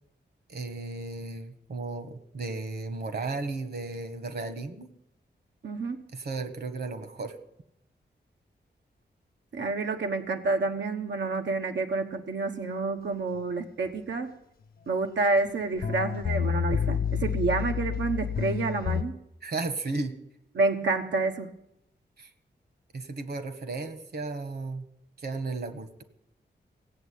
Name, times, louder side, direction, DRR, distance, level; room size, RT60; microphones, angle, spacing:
voice 1, 0.5-4.9 6.1-7.3 19.4-20.2 22.2-22.3 22.9-24.9 25.2-26.0, right 3 dB, 65° right, 10 dB, 1.6 m, -34 dB
voice 2, 5.6-6.0 9.5-14.3 14.9-19.2 20.5-21.5, right 3 dB, 85° right, 4 dB, 1.1 m, -29 dB
sound 1, 15.5-15.6 15.8-19.0, left 7 dB, 55° left, 0.6 m, -29 dB
17.0 x 8.3 x 8.4 m, 0.80 s
wide cardioid pair, 160°, 18 cm